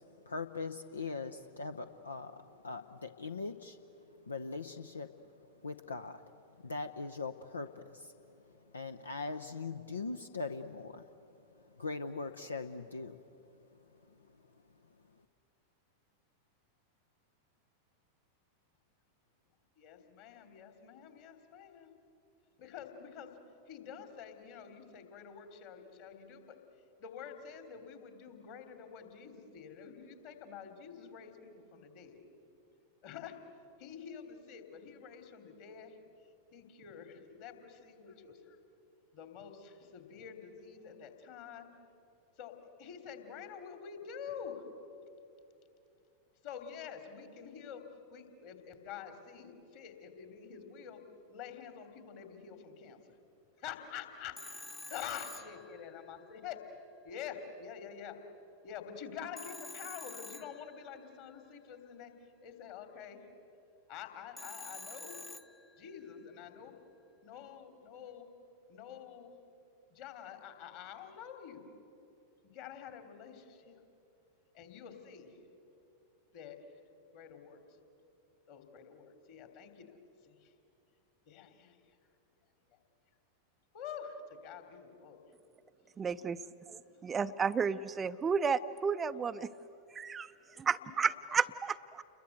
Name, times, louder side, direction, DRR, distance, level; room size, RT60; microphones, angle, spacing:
voice 1, 0.3-3.8 4.3-5.1 5.6-6.2 6.6-8.1 8.7-11.0 11.8-13.2, left 3 dB, 75° left, 9 dB, 0.7 m, -40 dB
voice 2, 19.8-21.9 22.6-23.3 23.7-26.6 27.0-32.2 33.0-33.3 33.8-36.0 36.5-38.6 39.1-41.7 42.4-42.5 42.8-44.6 46.4-47.8 48.1-51.0 51.3-53.0 53.6-54.4 54.9-56.6 57.0-58.2 58.6-62.1 62.4-63.2 63.9-65.2 65.8-66.7 67.2-68.3 68.7-69.3 69.9-71.6 72.4-73.8 74.5-75.4 76.3-76.6 77.1-77.6 78.5-79.9 80.2-80.5 81.3-81.8 83.7-85.2 90.8-90.9, left 8 dB, 50° left, 7 dB, 3.0 m, -47 dB
Telephone, 54.4-56.3 59.4-61.2 64.4-66.0, left 2 dB, 10° left, 0.9 m, -48 dB
voice 3, 86.0-89.5 89.9-92.0, right 6 dB, 20° right, 11 dB, 0.5 m, -33 dB
29.5 x 22.0 x 8.1 m, 2.7 s
figure-of-eight pair, 90°, 0 cm